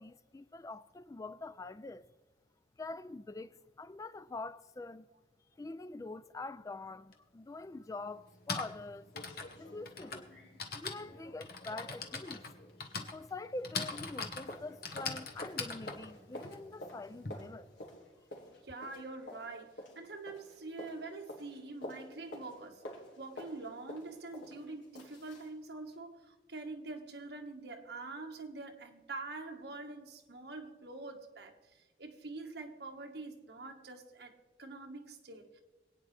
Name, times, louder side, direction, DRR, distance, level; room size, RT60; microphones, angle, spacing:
voice 1, 0.0-2.0 2.8-3.5 3.8-5.1 5.6-9.1 9.6-10.3 10.7-12.5 13.1-17.7, left 2 dB, 20° left, 0.3 m, -45 dB
Typing, 7.1-7.2 8.2-17.3, left 4 dB, 60° left, 1.4 m, -42 dB
sound 1, 8.3-8.4 8.7-8.8 9.1-13.7 13.9-25.5 25.9-26.0, left 1 dB, 90° left, 3.0 m, -51 dB
voice 2, 18.6-22.8 23.2-34.3 34.6-35.6, right 3 dB, 65° right, 1.6 m, -45 dB
26.0 x 9.3 x 3.4 m
head